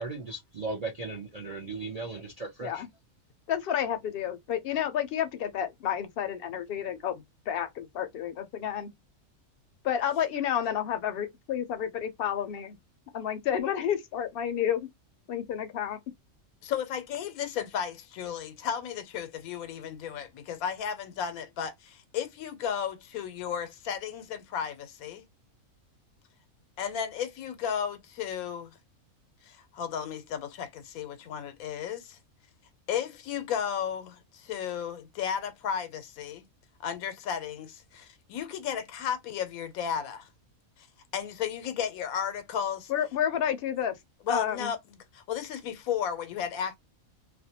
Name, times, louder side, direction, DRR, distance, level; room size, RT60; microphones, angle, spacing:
voice 1, 0.0-2.8, right 3 dB, 65° right, 0.3 m, -37 dB
voice 2, 3.5-7.1 7.5-8.9 9.8-12.8 13.1-14.9 15.3-16.0 42.9-43.9 44.3-44.7, left 9 dB, 60° left, 0.6 m, -30 dB
voice 3, 16.6-25.3 26.8-28.8 29.4-32.2 32.9-36.4 36.8-40.3 40.8-40.9 41.1-42.9 44.2-46.7, left 8 dB, 90° left, 1.0 m, -34 dB
2.5 x 2.1 x 2.7 m
omnidirectional pair, 1.5 m